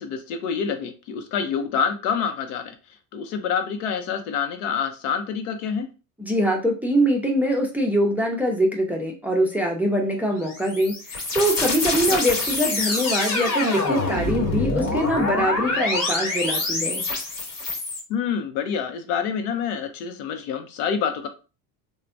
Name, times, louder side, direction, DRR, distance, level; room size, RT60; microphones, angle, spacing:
voice 1, 0.0-2.7 3.1-5.9 12.1-12.2 18.1-21.3, left 7 dB, 85° left, 7 dB, 0.7 m, -27 dB
voice 2, 6.2-17.0, equal, 5° right, 0 dB, 0.5 m, -23 dB
sound 1, 10.4-18.0, left 3 dB, 50° left, 1.3 m, -26 dB
3.2 x 2.2 x 2.5 m, 0.32 s
supercardioid pair, 105°, 42 cm